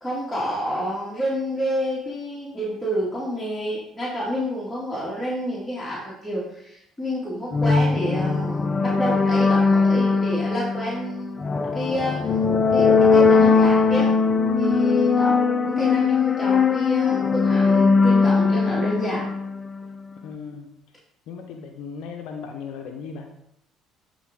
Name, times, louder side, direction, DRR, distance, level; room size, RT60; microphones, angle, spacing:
voice 1, 0.0-12.4 12.7-14.1 14.6-15.4 15.6-19.3 20.5-20.6, equal, 5° left, -8 dB, 2.5 m, -29 dB
sound 1, 7.5-20.0, left 4 dB, 35° left, 0.6 m, -20 dB
voice 2, 20.2-20.7 21.3-23.3, left 6 dB, 70° left, 3 dB, 0.8 m, -36 dB
11.0 x 3.9 x 3.7 m, 0.78 s
hypercardioid pair, 60°, 0 cm